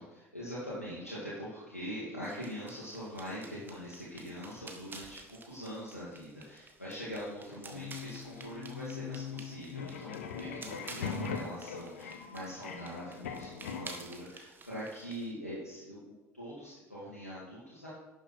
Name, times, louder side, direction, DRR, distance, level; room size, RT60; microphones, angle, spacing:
voice 1, 0.0-17.9, equal, 90° left, -8 dB, 1.9 m, -43 dB
sound 1, 2.2-15.3, right 3 dB, 25° right, 1.7 m, -52 dB
sound 2, 7.7-14.0, left 6 dB, 70° left, 0.9 m, -41 dB
11.5 x 7.1 x 4.4 m, 1.1 s
figure-of-eight pair, 55°, 8 cm